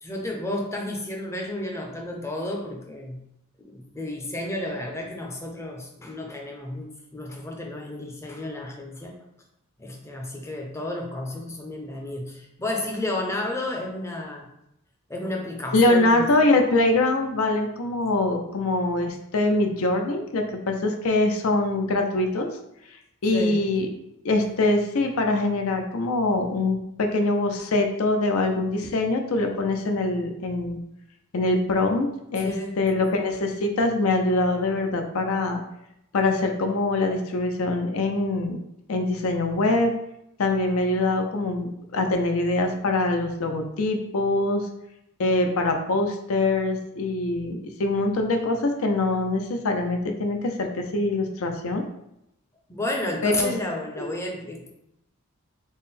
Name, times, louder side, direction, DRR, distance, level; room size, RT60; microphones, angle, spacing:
voice 1, 0.0-3.2 3.6-9.2 9.8-14.4 15.1-16.3 23.3-23.6 32.4-32.8 52.7-54.7, left 1 dB, 10° left, 0 dB, 0.5 m, -32 dB
voice 2, 15.7-22.5 23.2-23.9 24.2-30.8 31.3-35.6 36.1-38.6 38.9-40.0 40.4-44.7 45.2-51.8 53.2-53.5 54.0-54.1, left 2 dB, 70° left, 4 dB, 0.5 m, -23 dB
3.6 x 2.1 x 4.1 m, 0.81 s
head